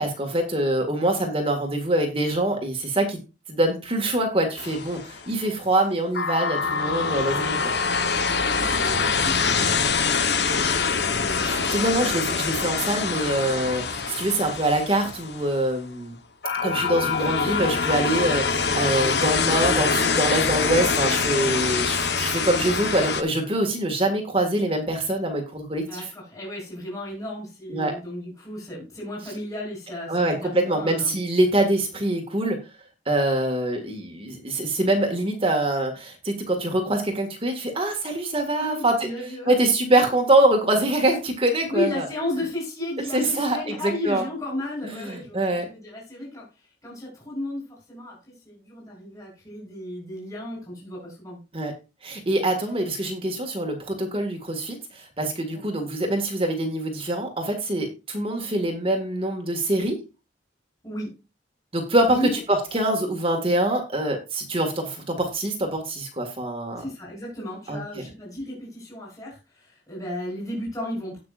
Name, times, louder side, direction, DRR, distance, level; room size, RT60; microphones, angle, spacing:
voice 1, 0.0-3.2 3.5-7.7 11.3-16.2 16.6-26.1 27.7-27.9 30.1-32.6 33.1-39.1 39.5-42.0 43.1-43.7 44.0-44.2 44.8-45.7 51.5-51.7 52.0-60.0 61.7-66.8 67.7-68.0, right 1 dB, 30° right, 3 dB, 1.9 m, -24 dB
sound 1, 4.6-5.3 6.1-15.7 16.4-23.2, left 5 dB, 65° left, 1.1 m, -24 dB
voice 2, 8.4-11.7 25.9-31.1 38.6-40.0 41.7-46.5 46.8-51.4 55.5-55.6 60.8-61.1 62.0-62.4 66.8-71.2, left 1 dB, 20° left, -3 dB, 4.9 m, -34 dB
17.5 x 6.0 x 2.5 m, 0.28 s
head